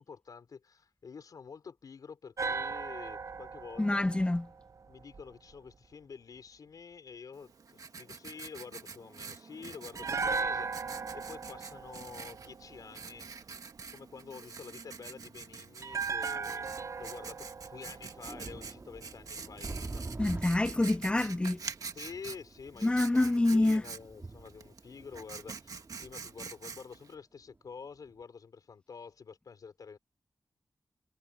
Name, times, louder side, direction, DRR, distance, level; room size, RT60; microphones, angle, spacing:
voice 1, 0.0-4.1 4.9-13.5 13.9-20.2 21.2-21.3 21.9-23.1 23.3-30.0, left 5 dB, 85° left, 5.6 m, -48 dB
sound 1, 2.4-5.5 9.9-13.2 15.8-19.0 19.3-19.4, right 5 dB, 60° right, 0.6 m, -37 dB
voice 2, 3.8-4.5 20.2-21.6 22.8-23.8, left 2 dB, 15° left, 0.6 m, -27 dB
Writing, 7.3-27.1, right 5 dB, 75° right, 1.5 m, -46 dB
sound 2, 14.2-14.3 15.3-15.4 16.5-16.6 17.0-17.1 17.6-27.7 28.1-28.2, right 3 dB, 40° right, 4.3 m, -47 dB
wide cardioid pair, 75°, 6 cm